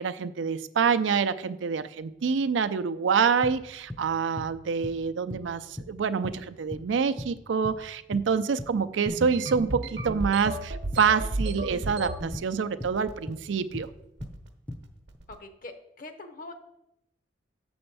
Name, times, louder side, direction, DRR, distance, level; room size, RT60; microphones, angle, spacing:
voice 1, 0.0-13.9, right 6 dB, 85° right, 11 dB, 0.4 m, -27 dB
sound 1, 3.4-4.1 4.4-4.6 4.8-5.5 5.8-6.9 7.2-7.9 8.1-8.8 9.0-9.3 9.5-10.2 10.5-11.6 11.9-13.0 13.3-14.4 14.7-15.2, left 1 dB, 5° left, 0.4 m, -39 dB
sound 2, 9.1-12.4 12.8-13.3 13.6-13.9 14.2-14.5 15.1-15.3, right 2 dB, 65° right, 0.9 m, -33 dB
voice 2, 15.4-16.5, left 2 dB, 45° left, 6 dB, 0.8 m, -43 dB
6.9 x 4.3 x 6.8 m, 0.86 s
head